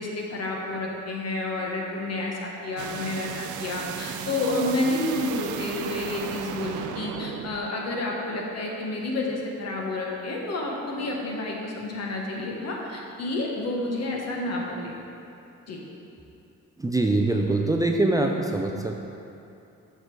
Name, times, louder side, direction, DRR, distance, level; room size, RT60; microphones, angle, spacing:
voice 1, 0.0-15.0 15.7-15.8, left 2 dB, 55° left, -1 dB, 1.5 m, -30 dB
sound 1, 2.8-7.6, right 8 dB, 80° right, 0.5 m, -35 dB
voice 2, 16.8-18.9, right 2 dB, 10° right, 2 dB, 0.5 m, -23 dB
7.8 x 6.1 x 4.7 m, 2.7 s
cardioid pair, 90°, 30 cm